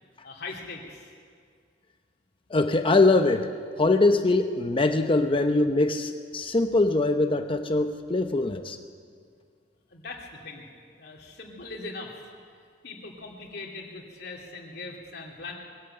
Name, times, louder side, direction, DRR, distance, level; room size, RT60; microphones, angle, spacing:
voice 1, 0.2-1.1 9.9-10.7 11.0-12.3 12.8-15.5, left 3 dB, 65° left, -1 dB, 2.7 m, -40 dB
voice 2, 2.5-3.5 3.8-8.8, left 2 dB, 30° left, 7 dB, 0.7 m, -22 dB
21.5 x 14.5 x 8.9 m, 2.1 s
head